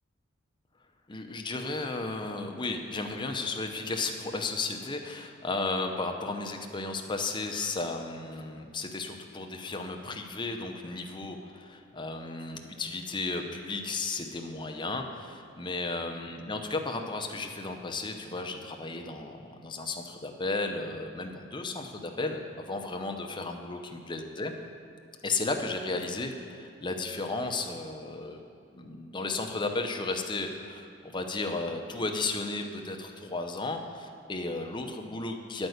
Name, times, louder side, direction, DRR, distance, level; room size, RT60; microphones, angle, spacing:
voice 1, 1.1-22.4 22.6-24.5 25.2-28.4 28.7-35.7, left 3 dB, 25° left, 4 dB, 0.7 m, -34 dB
9.3 x 5.3 x 7.9 m, 2.4 s
head